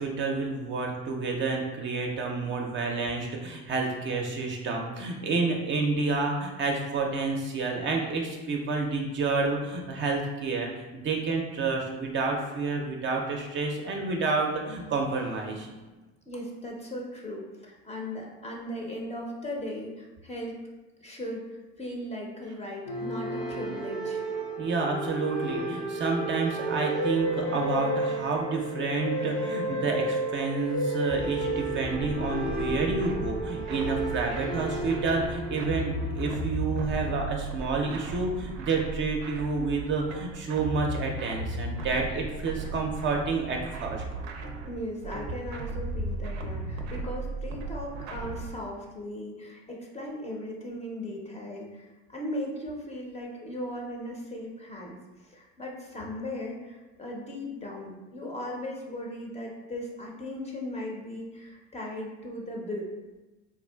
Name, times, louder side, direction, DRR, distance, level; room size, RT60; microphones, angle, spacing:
voice 1, 0.0-15.8 24.6-44.0, right 3 dB, 35° right, 1 dB, 0.5 m, -29 dB
voice 2, 16.3-20.6 21.0-24.2 44.7-62.9, left 1 dB, 20° left, -1 dB, 0.5 m, -37 dB
sound 1, 22.9-36.3, right 1 dB, 65° left, 0.8 m, -32 dB
sound 2, 31.1-37.5, right 1 dB, 85° left, 1.3 m, -40 dB
sound 3, 31.9-48.5, right 2 dB, 90° right, 0.5 m, -36 dB
3.6 x 2.3 x 2.2 m, 1.1 s
hypercardioid pair, 80°, 32 cm